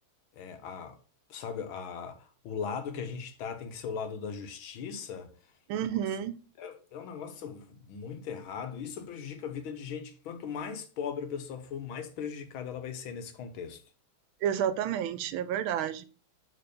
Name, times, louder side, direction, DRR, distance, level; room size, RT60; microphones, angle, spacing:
voice 1, 0.4-1.0 1.3-5.3 6.6-13.8, left 6 dB, 80° left, 1.8 m, -38 dB
voice 2, 5.7-6.4 14.4-16.0, right 9 dB, 90° right, 1.5 m, -30 dB
6.7 x 4.2 x 5.2 m
omnidirectional pair, 2.2 m